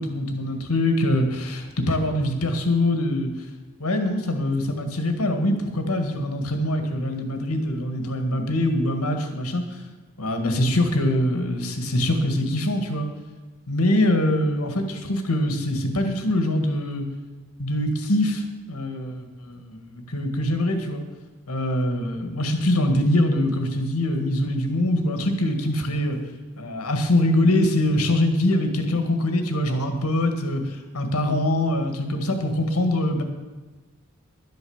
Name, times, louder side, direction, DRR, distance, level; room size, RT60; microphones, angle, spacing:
voice 1, 0.0-3.3 3.8-9.8 10.2-13.1 13.7-17.1 17.6-21.0 21.5-26.2 26.6-33.2, left 1 dB, 80° left, 6 dB, 1.8 m, -23 dB
12.0 x 8.3 x 7.1 m, 1.3 s
head